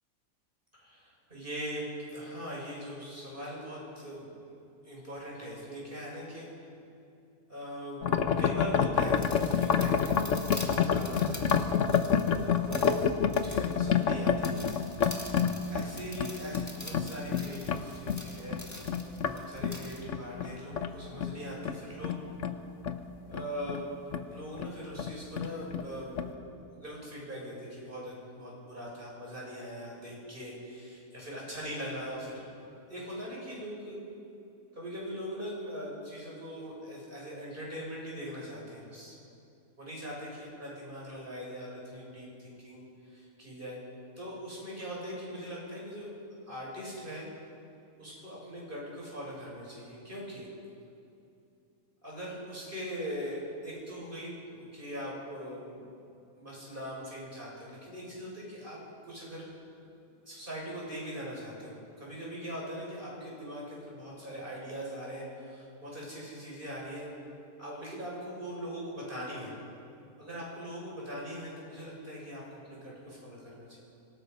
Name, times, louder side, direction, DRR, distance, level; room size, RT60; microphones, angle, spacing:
voice 1, 0.7-4.3 4.7-6.5 7.5-8.1 8.4-11.5 12.2-14.7 15.7-22.2 23.3-23.9 24.2-26.2 26.7-34.0 34.7-39.2 39.8-43.8 44.2-46.1 46.5-47.3 48.0-50.5 52.0-55.8 56.4-58.8 59.0-59.5 60.2-67.1 67.6-69.6 70.2-73.8, equal, 35° right, -4 dB, 6.9 m, -41 dB
sound 1, 8.0-19.3 19.6-23.0 23.3-23.8 24.1-24.3 24.6-24.7 25.0-25.9 26.2-26.3, left 7 dB, 60° left, 1.2 m, -29 dB
sound 2, 9.0-20.1, left 1 dB, 10° left, 1.9 m, -46 dB
25.5 x 18.5 x 5.5 m, 2.7 s
omnidirectional pair, 1.6 m